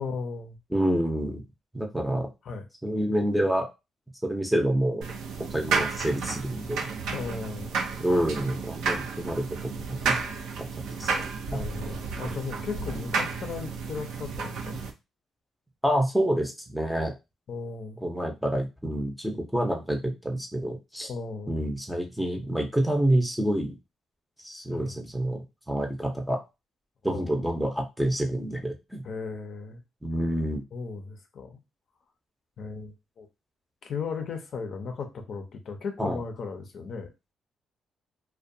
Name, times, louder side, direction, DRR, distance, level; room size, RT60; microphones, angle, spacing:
voice 1, 0.0-0.6 2.4-2.7 7.1-7.7 11.5-14.8 17.5-18.0 21.1-21.6 24.7-24.9 27.1-27.3 29.0-29.8 30.7-31.6 32.6-33.3 33.8-37.1, left 5 dB, 60° left, 5 dB, 0.5 m, -36 dB
voice 2, 0.7-1.4 1.7-2.3 2.8-3.7 4.2-5.0 5.5-6.9 8.0-10.2 10.6-11.1 11.5-11.6 12.9-13.0 15.8-17.1 18.0-21.1 21.5-23.7 24.4-25.4 25.7-26.4 27.0-29.0 30.0-30.6 36.0-36.2, right 1 dB, ahead, 2 dB, 0.6 m, -28 dB
sound 1, 5.0-14.9, right 5 dB, 85° right, 0.5 m, -32 dB
2.4 x 2.2 x 2.6 m, 0.25 s
cardioid pair, 90°, 0 cm